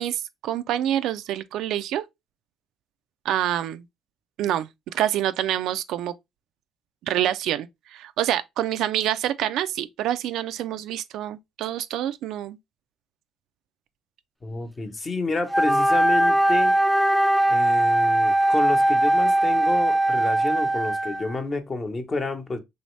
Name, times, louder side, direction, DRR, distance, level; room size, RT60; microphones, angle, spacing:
voice 1, 0.0-2.0 3.2-3.8 4.4-6.1 7.0-12.6, right 12 dB, 75° right, 0.3 m, -27 dB
voice 2, 14.4-16.8 17.5-22.6, left 3 dB, 35° left, 0.9 m, -30 dB
Wind instrument woodwind instrument, 15.5-21.4, right 1 dB, 5° right, 0.4 m, -20 dB
3.0 x 2.7 x 3.2 m
supercardioid pair, 75°, 0 cm